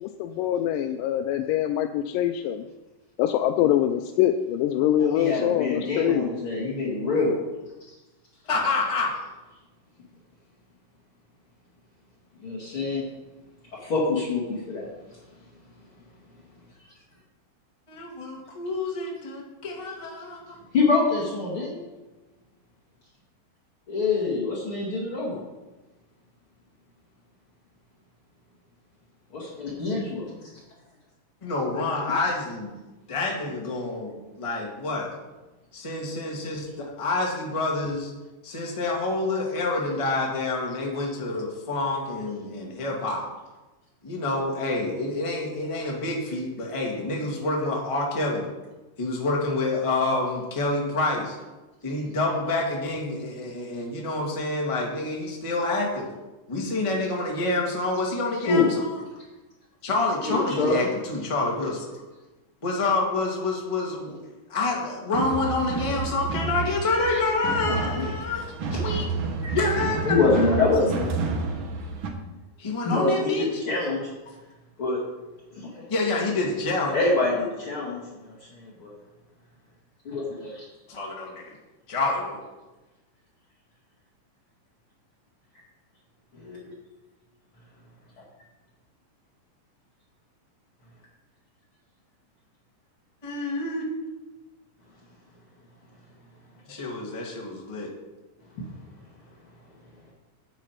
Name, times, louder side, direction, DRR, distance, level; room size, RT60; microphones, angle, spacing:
voice 1, 0.0-2.7 3.2-6.3, left 11 dB, 85° left, 6 dB, 2.1 m, -24 dB
voice 2, 5.0-7.3 12.4-13.0 13.8-14.4 14.7-14.9 20.7-21.8 23.9-25.4 29.3-30.3 58.5-58.7 60.2-60.8 66.9-67.2 67.7-68.0 69.4-69.6 70.1-71.1 72.8-74.1 74.8-75.0 75.5-75.9 76.9-78.9 80.0-80.6 86.3-86.6 98.6-98.7, left 3 dB, 45° left, -6 dB, 2.6 m, -25 dB
voice 3, 8.4-9.3 17.9-20.5 31.4-32.7 33.1-35.1 35.7-38.1 38.4-43.3 44.0-48.5 49.0-51.4 51.8-56.1 56.5-59.0 59.8-62.0 62.6-64.2 64.5-69.0 69.5-70.5 72.6-73.6 75.9-77.0 80.9-81.5 81.9-82.4 93.2-93.9 96.7-97.9, left 2 dB, 15° left, -2 dB, 1.1 m, -28 dB
sound 1, 65.1-72.1, right 4 dB, 80° right, 1.1 m, -30 dB
10.0 x 8.8 x 4.6 m, 1.1 s
omnidirectional pair, 3.9 m